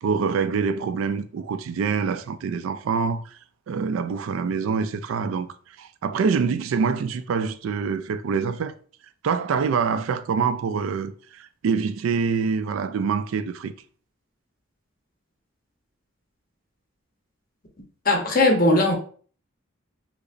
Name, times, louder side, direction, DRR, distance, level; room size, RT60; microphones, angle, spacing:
voice 1, 0.0-3.2 3.7-5.5 5.8-8.7 9.2-13.7, right 5 dB, 85° right, 0.3 m, -25 dB
voice 2, 18.0-18.9, left 2 dB, 45° left, 0.8 m, -18 dB
4.8 x 2.0 x 2.5 m
head